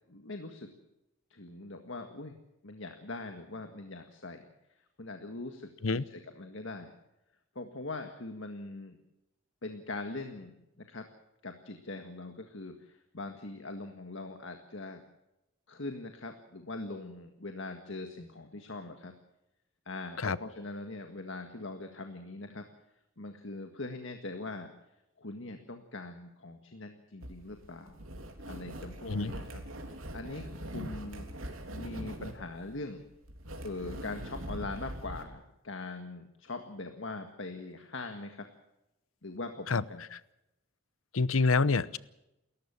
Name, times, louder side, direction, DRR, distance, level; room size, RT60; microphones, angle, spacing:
voice 1, 0.1-0.7 1.3-2.4 2.6-4.4 5.0-6.9 7.5-9.0 9.6-11.1 11.4-15.0 15.7-19.1 19.8-22.6 23.2-24.7 25.2-28.0 28.5-29.6 30.1-31.3 31.7-33.0 33.6-38.5 39.2-40.0, left 2 dB, 65° left, 5 dB, 1.8 m, -42 dB
sound 1, 27.2-35.2, right 1 dB, 85° right, 3.4 m, -42 dB
voice 2, 41.1-42.0, left 4 dB, 85° left, 17 dB, 0.9 m, -26 dB
29.0 x 14.5 x 7.2 m, 0.90 s
head